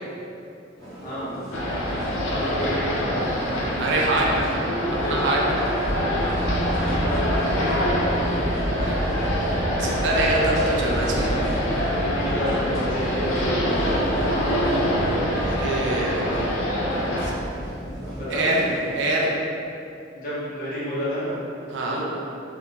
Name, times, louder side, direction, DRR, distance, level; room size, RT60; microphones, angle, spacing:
sound 1, 0.8-19.0, equal, 20° left, 1.0 m, -38 dB
sound 2, 1.5-17.3, equal, 90° left, 0.5 m, -25 dB
voice 1, 2.3-3.4 5.9-6.2 6.6-7.8 10.2-10.7 11.8-13.9 18.1-18.7 20.1-21.4 21.8-22.0, equal, 45° left, -10 dB, 0.8 m, -31 dB
voice 2, 3.8-4.5 5.0-5.5 8.8-9.0 9.7-11.3 15.3-16.5 17.2-17.3 18.3-18.7 19.0-19.3 21.7-22.0, right 2 dB, 60° right, -3 dB, 0.4 m, -24 dB
sound 3, 5.8-18.3, equal, 15° right, 0.9 m, -31 dB
2.4 x 2.1 x 2.9 m, 2.7 s
head